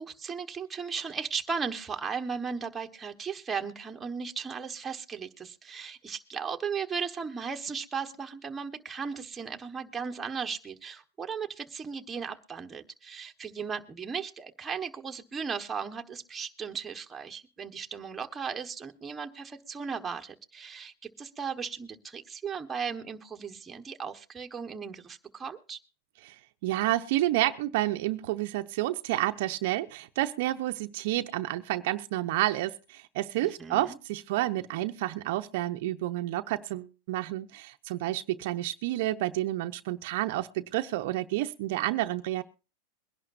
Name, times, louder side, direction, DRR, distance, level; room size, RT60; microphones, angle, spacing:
voice 1, 0.0-25.8 33.4-34.0, right 6 dB, 15° right, 4 dB, 1.2 m, -36 dB
voice 2, 26.6-42.4, right 16 dB, 60° right, 8 dB, 0.7 m, -30 dB
22.5 x 11.0 x 2.6 m, 0.33 s
hypercardioid pair, 125°, 0 cm